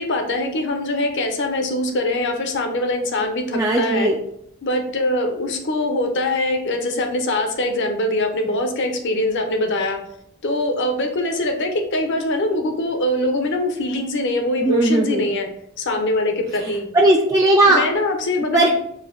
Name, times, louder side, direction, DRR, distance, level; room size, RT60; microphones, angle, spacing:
voice 1, 0.0-4.1 4.6-10.0 10.4-15.5 15.8-16.9 17.7-18.7, left 1 dB, 55° left, 4 dB, 0.7 m, -23 dB
voice 2, 3.5-4.1 14.6-15.2 16.9-17.8 18.5-18.7, right 2 dB, 15° right, -1 dB, 0.3 m, -16 dB
4.8 x 2.6 x 3.7 m, 0.72 s
head